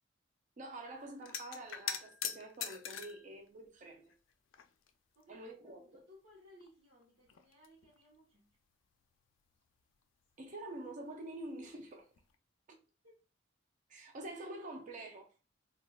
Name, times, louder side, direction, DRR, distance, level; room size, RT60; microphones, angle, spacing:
voice 1, 0.6-4.1 5.3-6.0 10.4-12.1 13.9-15.3, right 2 dB, 40° right, 0.5 m, -47 dB
sound 1, 1.2-3.3 4.1-4.9 5.2-5.3 6.6-6.7 7.0-8.1 11.6-11.9 12.1-12.3, left 8 dB, 80° left, 0.4 m, -42 dB
voice 2, 5.1-8.6 12.7-13.2, left 1 dB, 75° right, 0.9 m, -62 dB
3.3 x 2.3 x 2.2 m
head